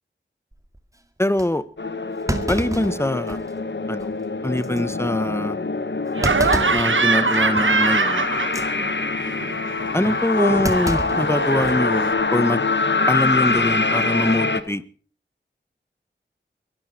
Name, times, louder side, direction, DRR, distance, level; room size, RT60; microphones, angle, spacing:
Thump thud, 0.5-0.8 1.4-1.5 2.3-3.6 4.0-4.1 4.6-4.8 6.2-6.9 7.3-7.6 8.4-8.7 10.6-11.8 12.2-12.3 13.4-13.7, right 1 dB, 15° right, 2.2 m, -29 dB
voice 1, 1.2-1.6 2.5-3.4 3.9-4.1 4.4-5.6 6.7-8.3 9.9-12.6 13.1-14.8, left 1 dB, 15° left, 1.3 m, -23 dB
sound 1, 1.8-14.6, left 3 dB, 65° left, 1.5 m, -24 dB
Laughter, 6.2-8.9 9.2-12.1, right 4 dB, 75° right, 1.3 m, -23 dB
23.0 x 13.0 x 4.5 m
wide cardioid pair, 55°, 20 cm